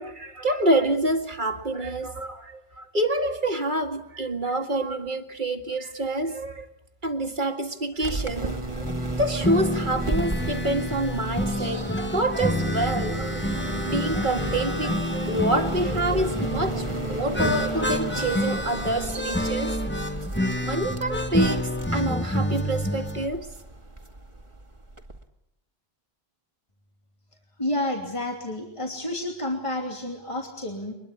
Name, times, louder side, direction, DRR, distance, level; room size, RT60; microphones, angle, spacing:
voice 1, 0.0-6.7 7.0-13.5 13.8-19.8 20.6-23.5, right 1 dB, 50° right, 6 dB, 2.2 m, -27 dB
sound 1, 8.0-25.2, right 2 dB, 30° right, 2.3 m, -34 dB
sound 2, 8.8-23.3, left 1 dB, 10° left, 1.6 m, -28 dB
voice 2, 27.6-30.9, left 1 dB, 30° left, 1 dB, 3.1 m, -30 dB
24.0 x 22.0 x 8.5 m, 0.80 s
omnidirectional pair, 1.1 m